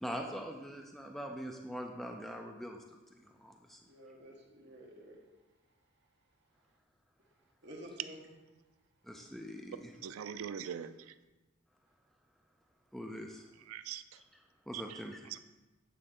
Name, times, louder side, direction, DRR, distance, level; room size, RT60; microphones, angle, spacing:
voice 1, 0.0-2.8 3.2-3.8 9.0-9.9 12.9-13.5 14.7-15.3, equal, ahead, 2 dB, 0.3 m, -43 dB
voice 2, 3.8-5.2 7.6-8.3, equal, 55° right, -1 dB, 1.2 m, -51 dB
voice 3, 10.0-11.1 13.7-14.0 14.7-15.0 15.3-15.4, right 8 dB, 85° right, 13 dB, 0.3 m, -42 dB
8.5 x 3.9 x 3.7 m, 1.1 s
head